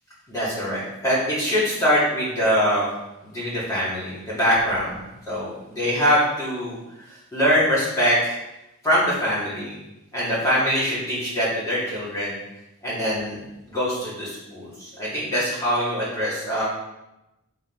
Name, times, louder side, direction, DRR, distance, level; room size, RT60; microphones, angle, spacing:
voice 1, 0.3-2.9 3.3-7.1 7.3-8.4 8.8-9.7 10.1-12.4 12.8-16.7, equal, 15° left, -9 dB, 2.5 m, -23 dB
6.7 x 4.2 x 4.7 m, 0.93 s
head